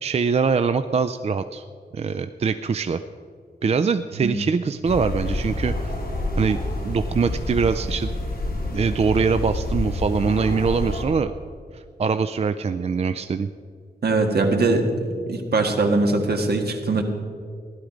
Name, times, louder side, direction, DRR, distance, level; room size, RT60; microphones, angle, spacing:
voice 1, 0.0-1.7 1.9-3.0 3.6-5.9 6.4-6.6 6.8-8.1 8.7-11.3 11.7-13.5, right 5 dB, 35° right, 10 dB, 0.4 m, -23 dB
sound 1, 4.8-11.0, left 1 dB, 60° left, 3.0 m, -28 dB
voice 2, 14.0-14.9 15.3-17.0, right 3 dB, 65° right, 3 dB, 1.6 m, -21 dB
16.0 x 11.5 x 5.1 m, 2.2 s
wide cardioid pair, 160°, 18 cm